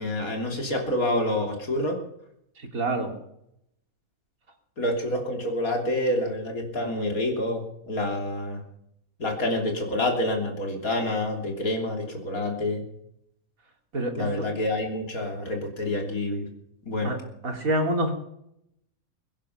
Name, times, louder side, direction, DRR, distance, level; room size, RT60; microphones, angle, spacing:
voice 1, 0.0-2.0 4.8-8.6 9.2-12.8 14.2-16.5 16.8-17.1, left 1 dB, 85° left, 2 dB, 3.6 m, -27 dB
voice 2, 2.6-3.1 13.9-14.5 17.0-17.2 17.4-18.1, right 1 dB, 75° right, 2 dB, 3.4 m, -27 dB
22.5 x 10.0 x 5.8 m, 0.77 s
omnidirectional pair, 1.5 m